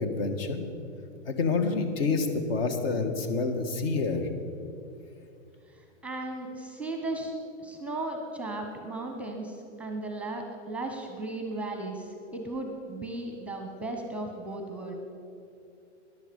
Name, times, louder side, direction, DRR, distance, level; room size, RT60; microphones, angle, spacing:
voice 1, 0.0-0.6 1.2-4.3, left 4 dB, 55° left, 7 dB, 1.6 m, -28 dB
voice 2, 6.0-7.3 7.6-14.9, right 2 dB, 5° right, 4 dB, 0.9 m, -36 dB
14.0 x 11.0 x 5.3 m, 2.6 s
hypercardioid pair, 140°, 36 cm